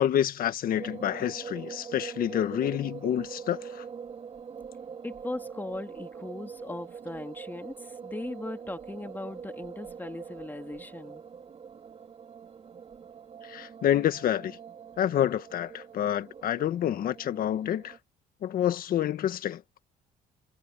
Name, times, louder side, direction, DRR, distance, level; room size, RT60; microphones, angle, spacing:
voice 1, 0.0-3.8 13.5-14.6 15.0-17.9 18.4-19.6, left 11 dB, 60° left, 1.6 m, -28 dB
sound 1, 0.7-18.0, right 6 dB, 35° right, 2.6 m, -43 dB
voice 2, 5.0-11.2, left 2 dB, 10° left, 2.7 m, -39 dB
cardioid pair, 110°, 17 cm